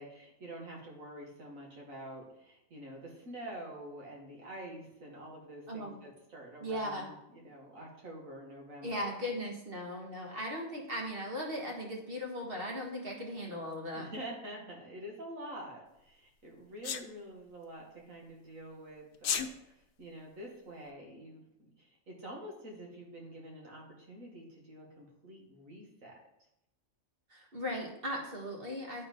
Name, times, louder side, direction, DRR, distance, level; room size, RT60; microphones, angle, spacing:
voice 1, 0.0-9.2 13.9-26.1, right 1 dB, 70° right, -1 dB, 2.1 m, -47 dB
voice 2, 5.7-6.0 6.6-7.1 8.8-14.1 27.3-29.0, equal, 45° right, 0 dB, 1.6 m, -38 dB
Sneeze, 16.8-17.1 19.1-19.5, left 7 dB, 60° left, 0.6 m, -31 dB
8.6 x 4.3 x 5.2 m, 0.84 s
omnidirectional pair, 1.4 m